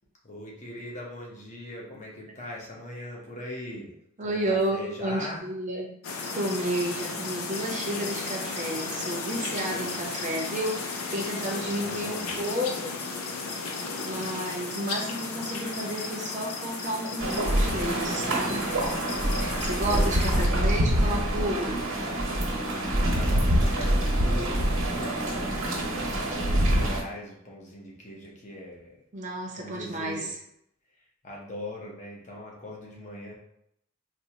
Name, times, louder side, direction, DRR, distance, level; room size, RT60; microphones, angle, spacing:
voice 1, 0.2-3.9 4.2-5.4 9.7-10.0 11.6-12.4 21.0-21.3 23.1-29.0 29.6-30.3 31.2-33.3, left 1 dB, 35° left, -2 dB, 0.7 m, -41 dB
voice 2, 4.2-5.9 6.3-12.9 14.0-18.8 19.4-21.8 29.1-30.4, right 1 dB, 35° right, -2 dB, 0.6 m, -31 dB
sound 1, 6.0-20.5, left 4 dB, 90° left, 0.5 m, -34 dB
sound 2, 17.2-27.0, right 1 dB, 85° right, 1.0 m, -25 dB
4.2 x 2.1 x 2.8 m, 0.72 s
head